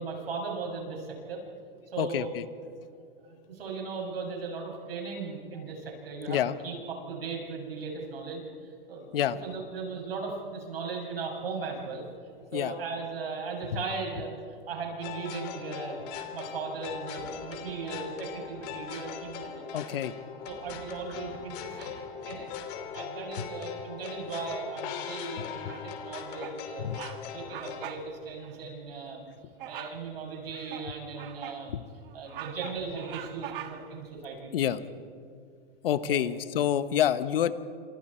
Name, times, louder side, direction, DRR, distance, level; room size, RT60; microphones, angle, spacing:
voice 1, 0.0-1.4 1.9-2.4 3.2-12.0 12.5-16.0 16.3-20.0 20.5-22.5 22.9-26.9 27.3-29.3 29.7-31.8 32.1-34.8 36.0-36.2, right 4 dB, 85° right, 0 dB, 7.3 m, -37 dB
voice 2, 2.0-2.4 6.3-6.5 9.1-9.4 12.5-12.7 19.7-20.1 26.8-27.0 31.7-31.8 34.5-34.8 35.8-37.5, left 10 dB, 75° left, 13 dB, 1.2 m, -27 dB
sound 1, 15.0-27.9, left 7 dB, 45° left, 3.1 m, -40 dB
Bird vocalization bird call bird song, 25.6-26.0 26.4-26.6 26.9-27.2 27.5-28.1 28.4-28.5 29.6-30.0 30.5-31.6 32.1-34.0, right 11 dB, 65° right, 1.7 m, -42 dB
28.5 x 26.5 x 4.5 m, 2.2 s
hypercardioid pair, 135°, 29 cm